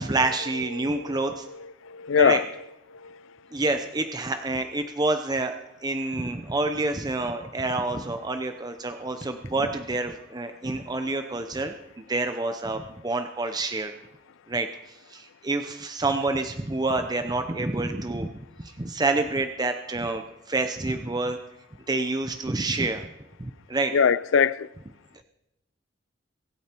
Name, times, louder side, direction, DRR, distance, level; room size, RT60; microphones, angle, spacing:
voice 1, 0.0-1.5 2.2-2.4 3.5-5.6 5.8-11.7 12.1-13.9 14.5-14.7 15.1-18.3 18.6-21.4 21.9-23.1 23.4-23.9, right 2 dB, 20° right, 0.7 m, -28 dB
voice 2, 0.8-2.5 3.0-3.1 23.9-24.7, left 6 dB, 80° left, 0.4 m, -23 dB
24.0 x 8.9 x 4.5 m
head